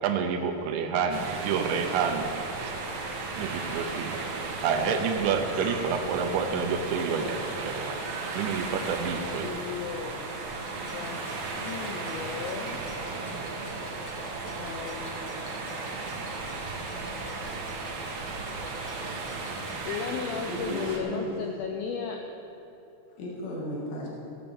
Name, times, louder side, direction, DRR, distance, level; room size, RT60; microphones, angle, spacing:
voice 1, 0.0-2.3 2.6-2.7 3.4-4.2 4.6-8.0 8.3-9.5, right 6 dB, 85° right, 4 dB, 3.2 m, -28 dB
sound 1, 1.1-21.0, right 3 dB, 65° right, 3.0 m, -35 dB
voice 2, 9.3-10.3 10.9-11.2 11.5-12.8 14.5-15.4 19.9-22.2, left 6 dB, 90° left, 3 dB, 2.0 m, -35 dB
Clock, 10.5-19.8, left 2 dB, 45° left, 2.4 m, -49 dB
voice 3, 20.5-21.3 23.2-24.1, left 1 dB, 70° left, -4 dB, 4.4 m, -35 dB
15.5 x 8.8 x 7.0 m, 2.9 s
omnidirectional pair, 5.1 m